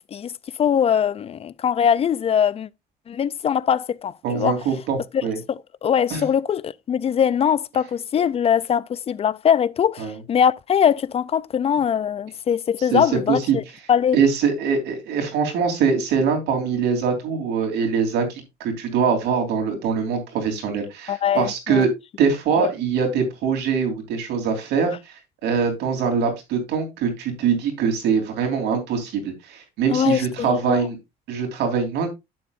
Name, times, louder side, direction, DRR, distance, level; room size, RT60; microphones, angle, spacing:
voice 1, 0.6-2.7 3.1-4.6 5.1-5.2 5.5-13.6 13.9-14.2 21.1-21.9 22.6-22.7 29.9-30.9, left 8 dB, 35° left, 0.4 m, -22 dB
voice 2, 4.2-5.4 6.1-6.2 10.0-10.2 12.9-13.0 13.3-13.6 14.1-21.9 22.2-24.9 25.4-31.0 31.3-32.1, right 6 dB, 85° right, 3.2 m, -23 dB
11.0 x 7.4 x 2.5 m
cardioid pair, 110°, 17 cm